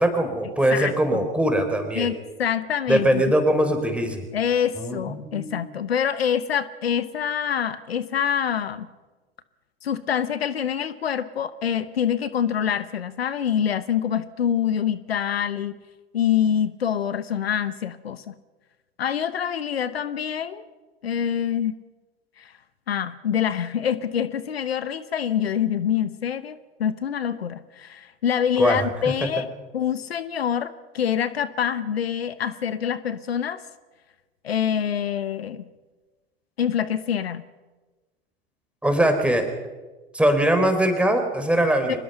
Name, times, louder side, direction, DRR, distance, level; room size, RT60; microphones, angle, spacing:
voice 1, 0.0-2.1 2.9-4.2 4.8-5.5 28.6-28.8 38.8-39.5 40.1-42.0, right 1 dB, 5° right, 5 dB, 4.3 m, -21 dB
voice 2, 0.7-1.3 1.9-3.2 4.3-8.9 9.8-15.8 16.1-18.3 19.0-20.6 21.0-21.8 22.4-22.5 22.9-29.5 29.7-33.6 34.4-35.7 36.6-37.4 41.9-42.0, left 8 dB, 85° left, 15 dB, 1.0 m, -25 dB
24.0 x 21.0 x 5.7 m, 1.2 s
hypercardioid pair, 85°, 30 cm